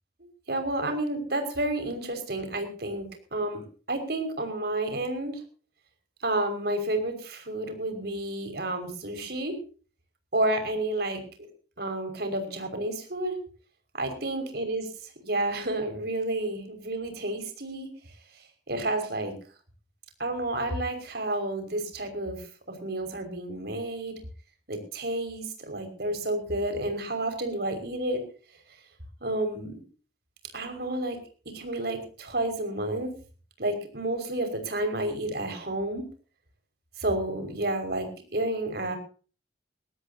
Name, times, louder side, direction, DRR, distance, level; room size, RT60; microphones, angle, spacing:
voice 1, 0.5-5.4 6.2-9.5 10.3-11.5 11.8-13.4 13.9-17.9 18.3-19.4 20.2-24.2 24.7-28.2 29.2-29.8 30.5-31.2 31.5-33.1 33.6-36.0 37.0-39.0, right 1 dB, 60° right, 6 dB, 5.8 m, -30 dB
22.5 x 18.0 x 2.9 m, 0.39 s
head